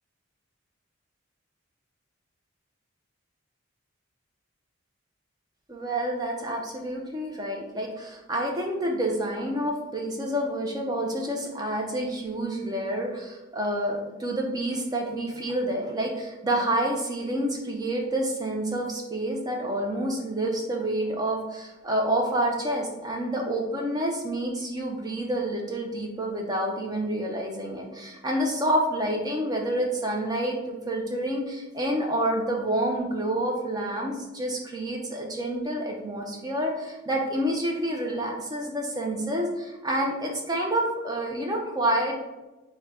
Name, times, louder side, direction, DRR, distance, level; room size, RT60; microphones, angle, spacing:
voice 1, 5.7-42.3, right 1 dB, 20° right, 0 dB, 0.5 m, -28 dB
3.7 x 2.1 x 4.1 m, 1.1 s
head